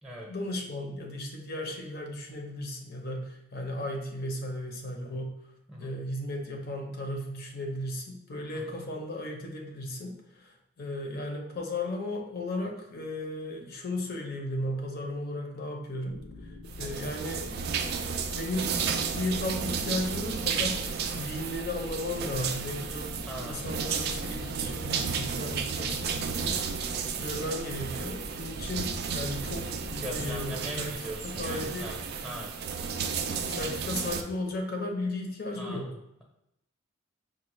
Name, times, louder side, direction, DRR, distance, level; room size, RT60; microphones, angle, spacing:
voice 1, 0.3-5.3 5.8-17.5 18.3-20.8 21.2-26.6 27.2-31.0 31.2-31.9 33.5-35.9, left 1 dB, 45° left, 1 dB, 0.6 m, -35 dB
sound 1, 16.1-30.6, left 1 dB, 90° left, 0.5 m, -45 dB
sound 2, 16.7-34.2, right 6 dB, 50° right, 0.3 m, -33 dB
voice 2, 23.3-23.6 29.9-32.5 35.5-35.9, equal, 5° right, -2 dB, 0.7 m, -40 dB
5.1 x 2.1 x 3.0 m, 0.82 s
head